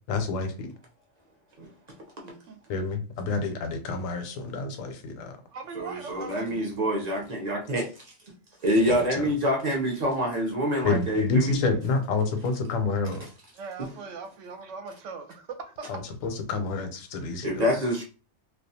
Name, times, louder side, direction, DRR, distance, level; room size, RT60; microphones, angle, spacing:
voice 1, 0.1-0.7 2.7-5.4 8.9-9.3 10.8-13.3 15.9-17.7, left 3 dB, 80° left, 1.0 m, -28 dB
voice 2, 2.2-2.6 5.5-6.7 13.6-15.9, right 4 dB, 70° right, 0.9 m, -40 dB
voice 3, 5.7-8.0 8.6-11.6 13.8-13.9 17.4-18.0, equal, 50° right, 0.5 m, -26 dB
2.4 x 2.2 x 2.7 m
omnidirectional pair, 1.4 m